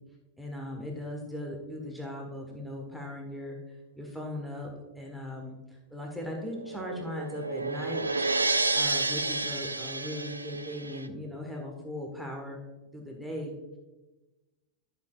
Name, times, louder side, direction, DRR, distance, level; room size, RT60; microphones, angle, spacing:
voice 1, 0.4-3.6 3.9-4.7 4.9-12.6 12.9-13.5, left 1 dB, ahead, -1 dB, 1.3 m, -38 dB
sound 1, 6.2-11.1, right 3 dB, 80° right, 0.4 m, -30 dB
11.5 x 6.9 x 2.4 m, 1.1 s
figure-of-eight pair, 90°, 0 cm